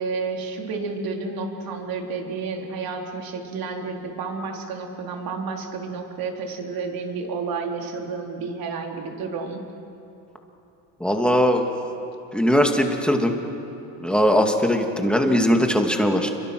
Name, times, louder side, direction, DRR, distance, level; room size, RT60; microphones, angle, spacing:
voice 1, 0.0-9.6, right 4 dB, 55° right, 2 dB, 3.9 m, -31 dB
voice 2, 11.0-11.6 12.3-13.4 14.0-16.3, equal, ahead, 3 dB, 2.5 m, -20 dB
28.5 x 23.5 x 6.3 m, 2.9 s
supercardioid pair, 100°, 41 cm